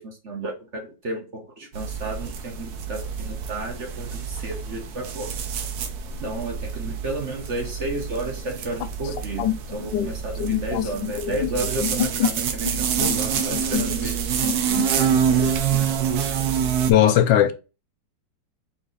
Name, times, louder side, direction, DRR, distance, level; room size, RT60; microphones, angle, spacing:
voice 1, 0.0-5.3 6.2-9.4 9.7-15.2, right 2 dB, 45° right, 1.2 m, -32 dB
sound 1, 1.7-16.9, right 7 dB, 65° right, 1.1 m, -27 dB
voice 2, 9.4-10.1 10.4-11.5 11.8-12.3 12.6-13.1 13.5-14.1 15.4-15.6 16.9-17.5, left 11 dB, 85° left, 1.3 m, -23 dB
4.1 x 3.0 x 3.8 m
omnidirectional pair, 2.0 m